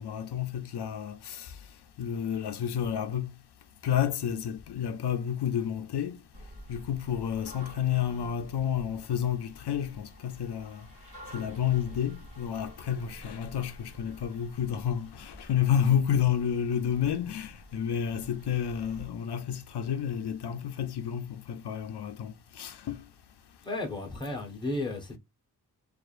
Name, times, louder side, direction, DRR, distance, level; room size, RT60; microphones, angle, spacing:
voice 1, 0.0-1.6 2.0-3.3 3.8-6.2 6.7-10.9 11.3-23.0, left 9 dB, 75° left, 0.5 m, -30 dB
sound 1, 6.3-19.1, equal, 35° right, 1.9 m, -50 dB
voice 2, 23.6-25.2, left 2 dB, 10° left, 0.9 m, -34 dB
4.4 x 2.5 x 2.4 m
wide cardioid pair, 165°, 40 cm